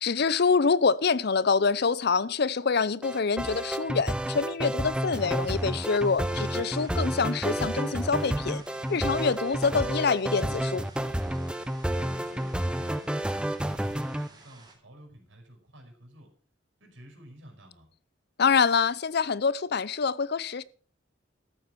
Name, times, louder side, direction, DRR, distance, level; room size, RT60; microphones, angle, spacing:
voice 1, 0.0-8.6 8.9-10.8 18.4-20.6, left 5 dB, 55° left, 0.6 m, -26 dB
sound 1, 3.0-14.3, right 1 dB, 5° right, 0.6 m, -30 dB
sound 2, 5.1-14.7, right 3 dB, 20° right, 3.5 m, -53 dB
voice 2, 5.1-5.4 11.9-16.3 16.8-17.9, equal, 80° right, 5.2 m, -51 dB
13.5 x 8.2 x 6.0 m
head